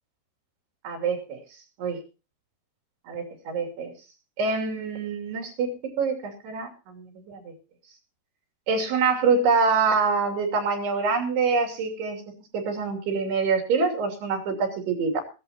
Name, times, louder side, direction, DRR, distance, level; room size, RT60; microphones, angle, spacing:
voice 1, 0.8-1.4 1.8-2.0 3.1-3.9 4.4-7.5 8.7-12.2 12.5-15.2, right 4 dB, 75° right, 2 dB, 4.8 m, -25 dB
18.5 x 16.0 x 2.9 m, 0.31 s
omnidirectional pair, 4.8 m